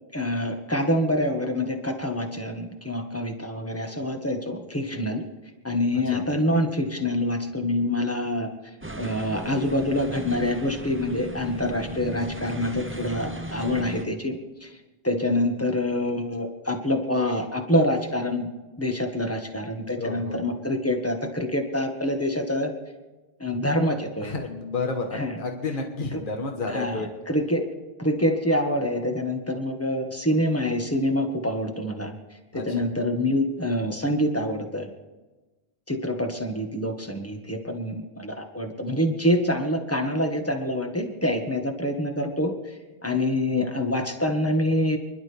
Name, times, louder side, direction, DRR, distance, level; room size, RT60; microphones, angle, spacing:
voice 1, 0.1-5.2 5.6-8.5 9.0-14.7 15.0-18.5 18.8-22.7 23.4-24.3 25.1-25.4 26.1-26.2 26.7-27.7 28.0-32.1 32.5-34.9 35.9-42.5 43.0-45.0, left 1 dB, 15° left, 3 dB, 1.6 m, -26 dB
voice 2, 5.9-6.3 20.0-20.4 24.2-27.1 32.5-32.9, left 3 dB, 55° left, 3 dB, 1.5 m, -31 dB
sound 1, 8.8-14.0, right 2 dB, 15° right, 0.8 m, -37 dB
29.5 x 11.5 x 3.5 m, 1.2 s
omnidirectional pair, 1.1 m